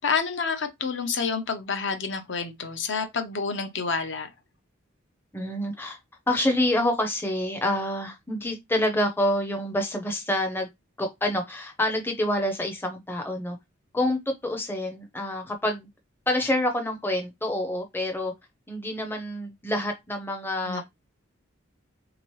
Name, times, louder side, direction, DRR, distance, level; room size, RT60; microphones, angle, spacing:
voice 1, 0.0-4.3 20.6-20.8, left 5 dB, 60° left, 0.8 m, -28 dB
voice 2, 5.3-6.0 6.3-10.7 11.0-13.6 13.9-15.9 16.3-18.3 18.7-20.8, left 1 dB, 10° left, 0.6 m, -27 dB
3.7 x 2.9 x 3.1 m
head